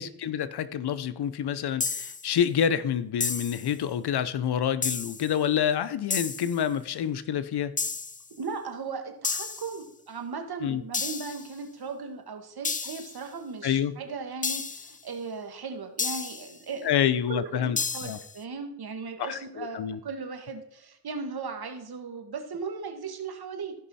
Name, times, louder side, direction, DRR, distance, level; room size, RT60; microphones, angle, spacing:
voice 1, 0.0-7.7 10.6-10.8 13.6-13.9 16.8-18.2 19.2-20.0, left 9 dB, 80° left, 14 dB, 0.7 m, -28 dB
sound 1, 1.8-2.3 3.2-3.7 4.8-5.3 6.1-6.6 7.8-8.3 9.2-9.8 10.9-11.5 12.6-13.2 14.4-15.0 16.0-16.5 17.8-18.3, left 4 dB, 20° left, 0.5 m, -31 dB
voice 2, 8.3-23.7, right 5 dB, 70° right, 5 dB, 1.6 m, -37 dB
14.5 x 5.5 x 4.2 m, 0.71 s
cardioid pair, 65°, 39 cm